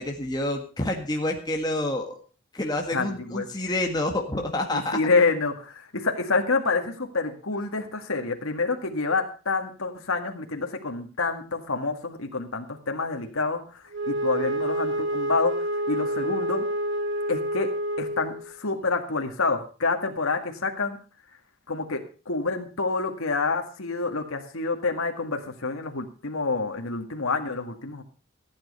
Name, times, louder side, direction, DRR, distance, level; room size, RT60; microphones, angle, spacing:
voice 1, 0.0-2.2 2.5-5.0, left 1 dB, 20° left, 1 dB, 1.7 m, -28 dB
voice 2, 2.9-3.5 4.7-15.5 15.9-16.7 17.3-17.7 18.0-21.0 21.7-22.0 22.3-28.0, left 3 dB, 85° left, 4 dB, 1.9 m, -27 dB
Wind instrument woodwind instrument, 13.9-18.5, right 1 dB, 60° right, 1.7 m, -28 dB
15.0 x 9.1 x 5.5 m, 0.37 s
head